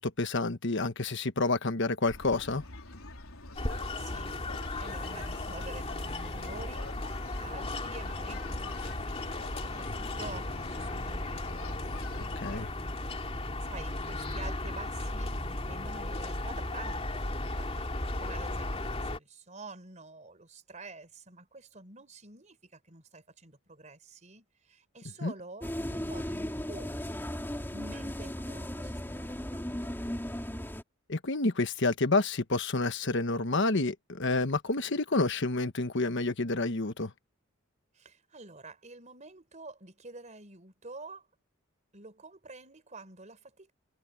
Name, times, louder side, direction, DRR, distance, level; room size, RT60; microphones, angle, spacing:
voice 1, 0.0-2.6 12.4-12.7 25.2-25.3 31.1-37.1, left 3 dB, 55° left, 1.3 m, -29 dB
sound 1, 2.1-12.6, left 2 dB, 85° left, 3.8 m, -46 dB
sound 2, 3.6-19.2, left 2 dB, 30° left, 2.7 m, -35 dB
voice 2, 3.6-4.3 4.8-12.9 13.3-27.2 27.7-30.0 37.9-41.3 41.9-43.7, right 3 dB, 35° right, 4.5 m, -49 dB
sound 3, 25.6-30.8, equal, 10° left, 2.7 m, -36 dB
head